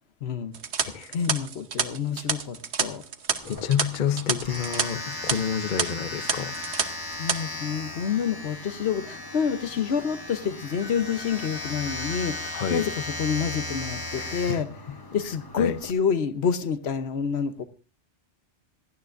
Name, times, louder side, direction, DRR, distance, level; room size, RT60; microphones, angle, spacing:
voice 1, 0.2-0.6 1.1-3.0 7.2-12.9 13.2-14.7 15.1-17.6, left 7 dB, 65° left, 1.1 m, -28 dB
sound 1, 0.5-4.8 5.1-5.3 5.8-5.9 6.3-6.8 7.1-7.4, right 7 dB, 70° right, 1.2 m, -28 dB
voice 2, 0.8-1.2 3.4-6.5 12.5-12.9 14.1-14.6 14.9-15.0 15.6-15.8, left 8 dB, 50° left, 0.8 m, -29 dB
Domestic sounds home sounds, 3.4-15.9, left 1 dB, 20° left, 1.1 m, -37 dB
sound 2, 4.8-6.9 10.8-12.9, left 4 dB, 20° right, 1.6 m, -45 dB
27.0 x 9.5 x 2.5 m
omnidirectional pair, 1.2 m